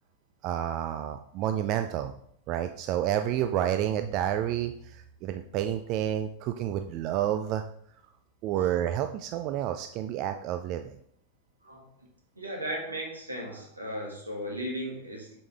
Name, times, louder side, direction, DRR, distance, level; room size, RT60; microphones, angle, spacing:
voice 1, 0.4-2.1 2.5-7.6 8.4-10.9, right 11 dB, 40° right, 8 dB, 0.3 m, -29 dB
voice 2, 12.4-15.4, equal, 80° right, -1 dB, 1.7 m, -36 dB
7.0 x 4.8 x 3.3 m, 0.68 s
figure-of-eight pair, 90°, 0 cm